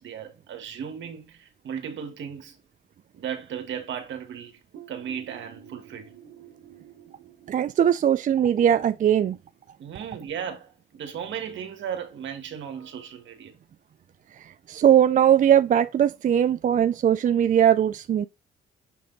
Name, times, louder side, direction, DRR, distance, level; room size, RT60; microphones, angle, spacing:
voice 1, 0.0-2.6 3.1-4.6 4.9-6.1 9.8-13.5, right 8 dB, 70° right, 1.8 m, -36 dB
sound 1, 4.7-10.3, right 9 dB, 90° right, 1.6 m, -51 dB
voice 2, 7.5-9.4 14.7-18.3, right 9 dB, 40° right, 0.4 m, -20 dB
6.9 x 3.4 x 4.0 m
cardioid pair, 90°, 20 cm